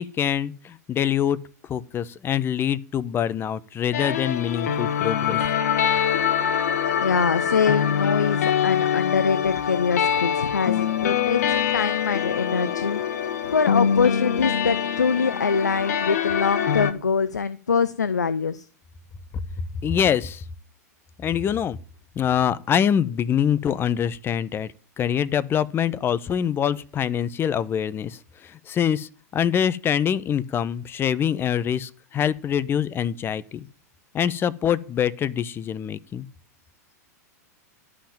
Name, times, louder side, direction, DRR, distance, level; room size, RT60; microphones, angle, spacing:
voice 1, 0.0-1.4 1.7-5.4 19.8-20.4 21.2-21.8 22.2-33.6 34.1-36.3, left 9 dB, 25° left, 0.9 m, -25 dB
sound 1, 3.9-16.9, left 8 dB, 65° left, 1.2 m, -24 dB
voice 2, 7.0-13.0 13.5-18.7, left 5 dB, 85° left, 0.6 m, -24 dB
12.5 x 5.7 x 9.0 m
hypercardioid pair, 100°, 9 cm